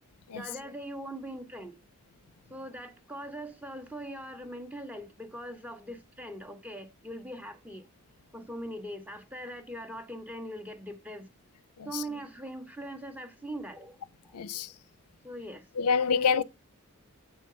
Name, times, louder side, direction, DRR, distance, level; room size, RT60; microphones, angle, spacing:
voice 1, 0.3-1.8 2.5-7.9 8.3-11.3 11.8-14.0 14.2-14.7 15.2-15.7 16.1-16.4, right 1 dB, 5° right, 1.1 m, -41 dB
voice 2, 14.3-14.7 15.8-16.4, left 6 dB, 90° left, 0.6 m, -27 dB
7.6 x 4.5 x 6.7 m
head